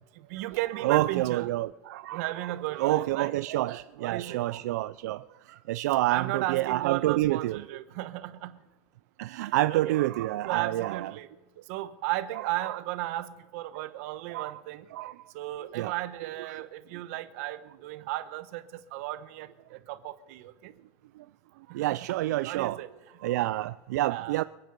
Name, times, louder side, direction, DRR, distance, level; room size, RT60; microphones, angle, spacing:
voice 1, 0.3-1.5 2.1-3.4 3.6-4.5 6.1-8.6 9.4-9.9 10.4-11.3 11.7-14.8 15.3-18.6 18.9-19.5 19.9-20.5 22.4-22.9 24.1-24.4, right 16 dB, 55° right, 1.1 m, -35 dB
voice 2, 0.8-5.2 5.7-7.6 9.2-11.1 12.3-12.8 14.3-14.5 14.9-15.1 15.8-15.9 16.5-16.6 21.7-22.8 23.2-24.4, right 16 dB, 80° right, 0.4 m, -28 dB
25.5 x 9.2 x 5.3 m
supercardioid pair, 165°, 9 cm